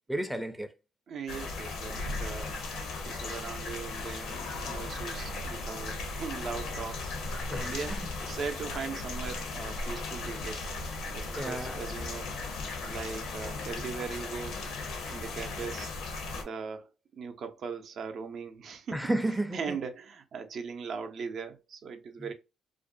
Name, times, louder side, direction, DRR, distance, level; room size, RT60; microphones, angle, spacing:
voice 1, 0.1-0.7 7.5-8.0 11.4-11.8 18.9-19.8, right 1 dB, 5° right, 0.5 m, -32 dB
voice 2, 1.1-2.6 3.0-7.1 7.5-10.7 11.1-12.3 12.8-14.7 15.1-15.9 16.3-19.0 19.5-22.3, right 5 dB, 60° right, 0.5 m, -39 dB
sound 1, 1.3-16.4, left 3 dB, 75° left, 0.7 m, -37 dB
2.5 x 2.1 x 2.5 m
supercardioid pair, 65°, 0 cm